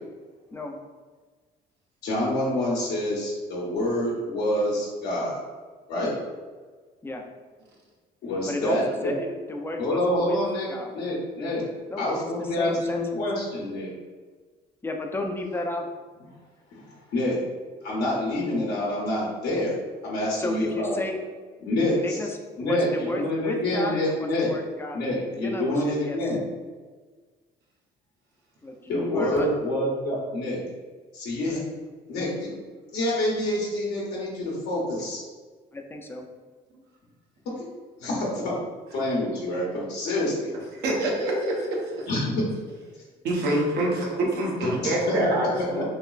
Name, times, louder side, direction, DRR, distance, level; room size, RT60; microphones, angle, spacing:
voice 1, 2.0-5.4 5.9-6.1 8.2-8.8 9.8-10.7 10.9-11.6 12.0-13.9 16.7-17.4 17.8-19.7 20.0-20.9 21.6-22.2 22.6-24.5 24.9-26.4 28.9-30.6 31.1-31.6 32.1-32.5 32.9-35.2 38.0-38.6 38.9-40.5 42.1-42.5 43.5-43.6 44.5-45.8, left 1 dB, 75° left, -5 dB, 0.8 m, -27 dB
voice 2, 8.5-10.4 10.7-10.9 11.9-12.1 12.6-13.2 14.8-15.9 20.4-21.2 22.0-25.0 25.4-26.2 28.6-29.5 35.7-36.2, left 1 dB, 15° left, 3 dB, 0.4 m, -33 dB
voice 3, 40.7-42.1 43.2-45.8, right 1 dB, 80° right, -1 dB, 0.8 m, -26 dB
3.2 x 2.9 x 2.4 m, 1.4 s
cardioid pair, 110°, 17 cm